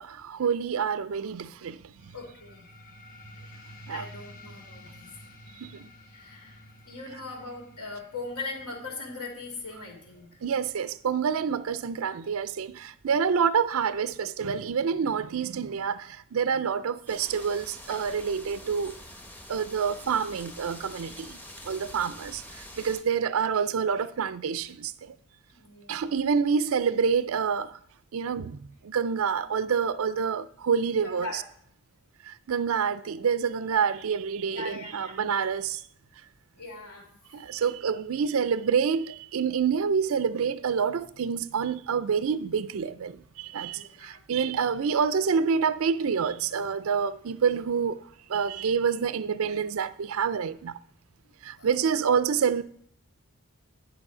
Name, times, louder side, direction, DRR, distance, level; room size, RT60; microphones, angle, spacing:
voice 1, 0.0-1.8 3.9-4.1 5.6-5.9 10.4-19.0 19.5-21.4 21.7-25.2 25.9-27.8 28.1-31.4 32.2-35.8 37.3-50.8 51.4-52.6, right 6 dB, 70° right, 0.4 m, -27 dB
sound 1, 2.0-13.0, left 1 dB, 40° left, 1.2 m, -51 dB
voice 2, 2.1-2.7 3.9-5.1 6.1-6.6 6.9-10.3 25.5-26.1 31.0-31.4 34.5-35.2 36.6-37.1 43.7-44.2 51.6-52.0, left 3 dB, 85° left, 3.0 m, -40 dB
sound 2, 17.1-23.0, left 1 dB, 10° left, 0.8 m, -45 dB
11.0 x 6.3 x 4.9 m
head